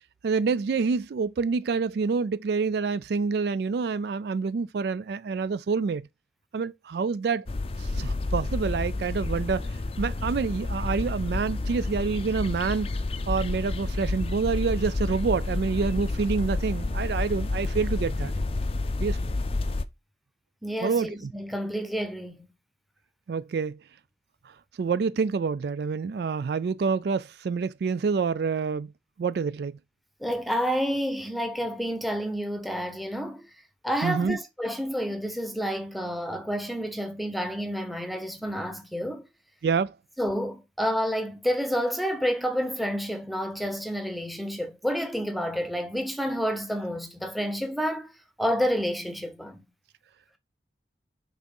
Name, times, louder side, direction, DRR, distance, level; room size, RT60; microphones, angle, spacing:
voice 1, 0.2-6.1 6.5-7.4 7.8-9.7 10.0-12.9 13.3-18.3 19.0-19.2 20.8-21.3 23.3-23.8 24.8-28.9 29.2-29.8 34.0-34.4 39.6-40.0, right 5 dB, 55° right, 0.3 m, -27 dB
sound 1, 7.5-19.8, left 2 dB, 30° left, 0.5 m, -30 dB
voice 2, 20.6-22.5 30.2-33.4 33.8-39.2 40.2-48.1 48.4-49.6, equal, ahead, 0.9 m, -29 dB
6.0 x 3.7 x 5.3 m
head